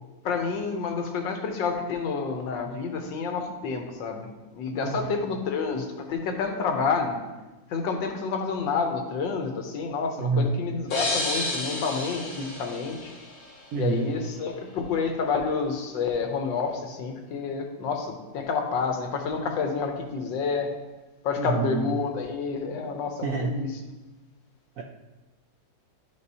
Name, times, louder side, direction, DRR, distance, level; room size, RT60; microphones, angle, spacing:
voice 1, 0.2-7.2 7.7-13.1 13.7-20.7 21.2-23.8, left 5 dB, 85° left, 4 dB, 1.6 m, -29 dB
voice 2, 10.2-10.6 13.7-14.1 21.4-21.9 23.2-23.5 24.8-24.9, right 4 dB, 75° right, 2 dB, 0.7 m, -27 dB
sound 1, 10.9-13.7, left 2 dB, 50° left, 1.7 m, -31 dB
11.0 x 5.2 x 2.7 m, 1.1 s
omnidirectional pair, 2.0 m